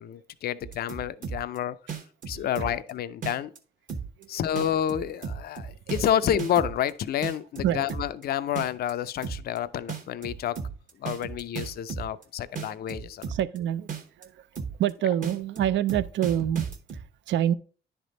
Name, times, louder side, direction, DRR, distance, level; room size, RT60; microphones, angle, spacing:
voice 1, 0.0-1.8 2.3-3.5 4.3-10.6 11.0-13.2, left 10 dB, 50° left, 0.4 m, -29 dB
sound 1, 0.6-1.6 1.9-2.9 3.2-3.6 3.9-4.2 4.6-6.9 7.2-8.2 8.6-8.9 9.2-9.6 9.9-12.2 12.6-13.6 13.9-14.2 14.6-14.9 15.2-17.0, right 6 dB, 40° right, 1.0 m, -35 dB
voice 2, 2.3-2.7 4.2-4.3 7.6-7.8 13.3-13.9 14.2-14.5 14.8-17.5, right 11 dB, 70° right, 0.4 m, -27 dB
10.0 x 3.4 x 3.9 m
cardioid pair, 90°, 20 cm